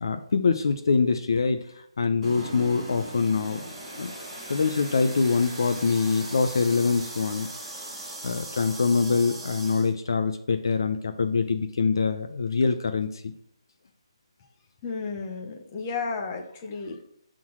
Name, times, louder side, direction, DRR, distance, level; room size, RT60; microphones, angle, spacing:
voice 1, 0.0-3.6 4.0-4.1 4.5-7.5 8.2-13.3, left 4 dB, 50° left, 7 dB, 0.7 m, -24 dB
sound 1, 2.2-9.9, right 1 dB, 5° right, 2.0 m, -39 dB
voice 2, 14.8-17.0, left 4 dB, 15° left, 2 dB, 0.9 m, -33 dB
11.0 x 3.9 x 6.2 m, 0.70 s
hypercardioid pair, 175°, 3 cm